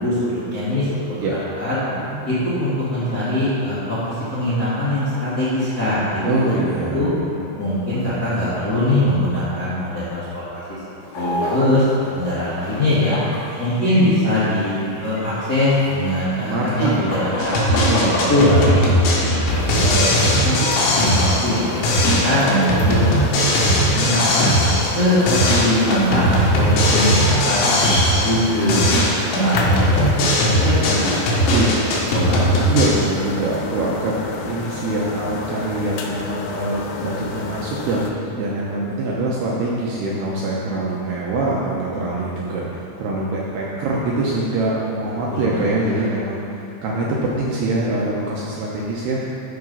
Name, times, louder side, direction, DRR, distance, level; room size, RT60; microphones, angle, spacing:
voice 1, 0.0-1.7 2.2-6.6 6.9-7.1 7.6-10.2 10.5-10.8 11.1-11.8 12.1-13.2 13.6-17.8 18.3-20.1 20.4-20.5 20.9-24.5 24.9-31.1 32.1-32.4 45.3-46.1, left 1 dB, 35° left, -13 dB, 1.6 m, -22 dB
voice 2, 6.2-7.5 16.4-17.2 17.8-18.7 19.5-20.3 31.5-31.7 32.7-49.2, right 2 dB, 75° right, -5 dB, 2.6 m, -24 dB
sound 1, 11.0-29.8, left 1 dB, 60° left, 3.6 m, -32 dB
sound 2, 17.4-21.6 21.8-25.0 25.3-28.4 28.7-32.9, equal, 75° left, 3.7 m, -18 dB
sound 3, 19.5-38.1, left 5 dB, 90° left, 3.3 m, -31 dB
12.5 x 4.9 x 5.5 m, 2.9 s
omnidirectional pair, 5.5 m